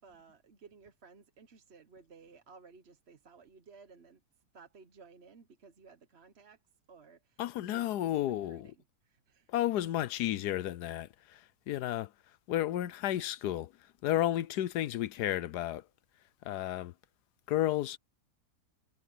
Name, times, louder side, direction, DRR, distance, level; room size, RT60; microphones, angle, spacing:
voice 1, 0.0-4.2 4.5-6.6 6.9-8.7 9.0-9.5, right 5 dB, 45° right, 1.2 m, -57 dB
voice 2, 7.4-8.7 9.5-12.1 12.5-13.7 14.0-15.8 16.4-16.9 17.5-18.0, left 13 dB, 80° left, 1.2 m, -32 dB
omnidirectional pair, 1.8 m